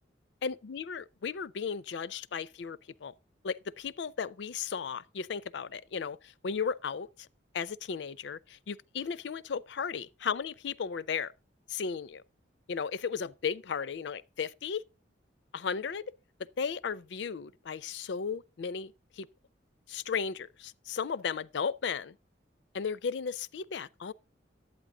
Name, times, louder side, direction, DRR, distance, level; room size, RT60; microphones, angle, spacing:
voice 1, 0.4-3.1 3.4-7.1 7.5-11.3 11.7-12.2 12.7-14.8 15.5-16.1 16.6-19.3 19.9-22.2 22.7-24.1, left 6 dB, 70° left, 0.4 m, -35 dB
11.0 x 8.9 x 3.7 m
head